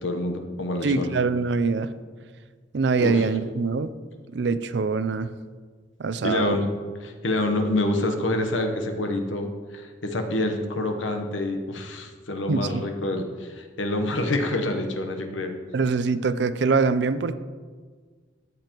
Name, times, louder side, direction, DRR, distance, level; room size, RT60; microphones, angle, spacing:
voice 1, 0.0-1.1 3.0-3.2 6.2-6.6 7.0-15.5, left 1 dB, 90° left, 5 dB, 1.0 m, -27 dB
voice 2, 0.8-1.9 2.7-3.9 4.3-5.3 6.0-6.6 12.5-12.8 15.7-17.4, right 4 dB, 65° right, 13 dB, 0.4 m, -24 dB
13.5 x 7.7 x 3.0 m, 1.5 s
head